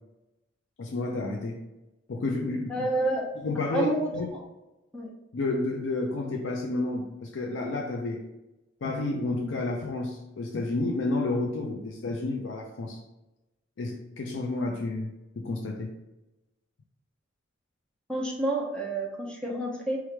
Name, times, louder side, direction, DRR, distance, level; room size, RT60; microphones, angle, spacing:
voice 1, 0.8-1.6 2.1-2.9 3.4-4.3 5.3-8.2 8.8-13.0 13.8-15.9, left 2 dB, 70° left, 1 dB, 0.5 m, -30 dB
voice 2, 2.7-3.2 3.7-4.4 4.9-5.1 18.1-20.0, right 2 dB, 5° left, -3 dB, 0.9 m, -29 dB
4.7 x 3.1 x 3.3 m, 1.0 s
head